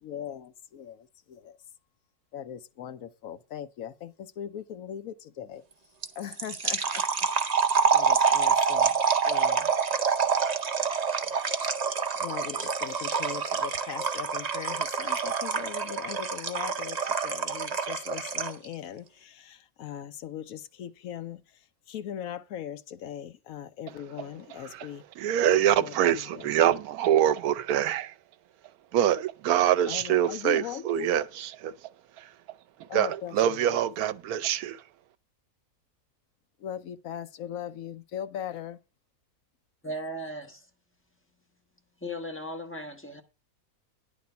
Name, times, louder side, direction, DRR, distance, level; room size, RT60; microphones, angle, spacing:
voice 1, 0.0-1.6 2.3-5.6 6.2-7.3 7.9-9.0 9.2-9.7 12.2-21.4 21.9-25.0 25.8-26.5 29.9-31.3 32.9-33.8 36.6-38.8, left 10 dB, 70° left, 1.1 m, -39 dB
sound 1, 6.0-18.7, right 6 dB, 40° right, 0.6 m, -27 dB
voice 2, 24.5-24.9 25.2-28.1 28.9-31.7 32.2-32.3 32.9-34.8, right 10 dB, 80° right, 1.1 m, -25 dB
voice 3, 39.8-40.7 42.0-43.2, equal, 10° left, 1.1 m, -37 dB
10.5 x 4.3 x 6.8 m
omnidirectional pair, 1.6 m